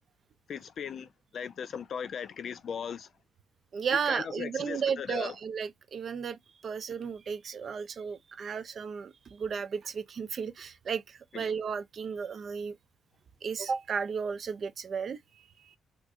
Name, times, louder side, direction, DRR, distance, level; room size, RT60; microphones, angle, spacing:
voice 1, 0.5-3.1 3.9-5.3 11.3-11.5, left 7 dB, 55° left, 0.4 m, -38 dB
voice 2, 3.7-12.7 13.4-15.2, right 6 dB, 50° right, 0.5 m, -34 dB
2.9 x 2.4 x 3.6 m
cardioid pair, 90°, 0 cm